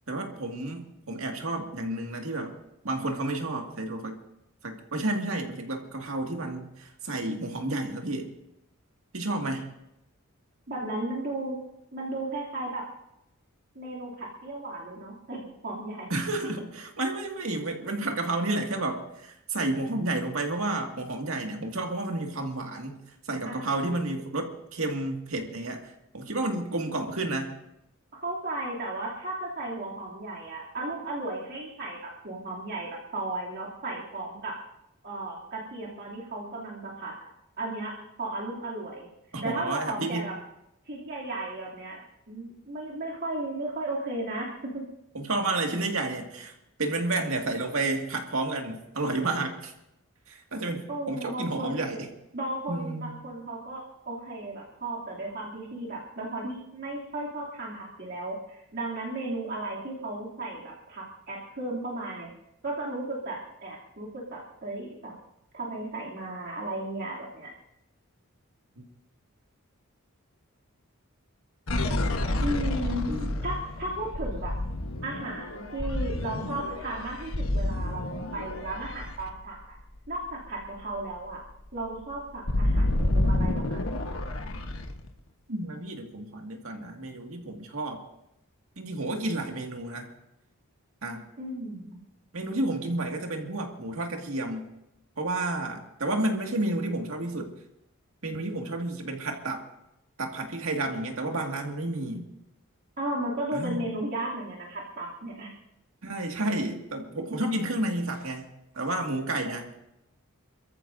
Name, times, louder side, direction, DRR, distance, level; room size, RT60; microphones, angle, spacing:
voice 1, 0.1-2.5 2.8-4.2 4.6-8.3 9.1-9.7 16.1-23.0 23.3-27.5 39.3-40.2 45.1-46.5 46.8-49.7 50.3-52.1 52.7-53.1 68.8-68.9 73.1-73.4 85.5-88.0 88.8-90.1 91.0-91.2 92.3-94.7 95.2-97.5 98.2-99.6 100.2-102.3 103.5-103.8 106.0-108.5 108.7-109.7, right 2 dB, 70° right, 2 dB, 2.1 m, -31 dB
voice 2, 10.7-11.6 11.9-12.8 13.7-16.1 23.4-23.9 28.1-34.5 35.0-37.3 37.6-37.9 38.2-39.1 39.4-40.3 40.9-44.8 50.9-51.8 52.3-62.3 62.6-65.1 65.5-67.5 72.4-73.0 73.4-74.5 75.0-79.8 80.1-81.4 81.7-83.8 91.4-92.0 103.0-105.5, right 2 dB, 50° right, -5 dB, 2.8 m, -35 dB
sound 1, 71.7-80.1 80.5-80.6 80.9-85.1, left 1 dB, 70° left, 1.2 m, -29 dB
29.0 x 14.0 x 2.7 m, 0.85 s
head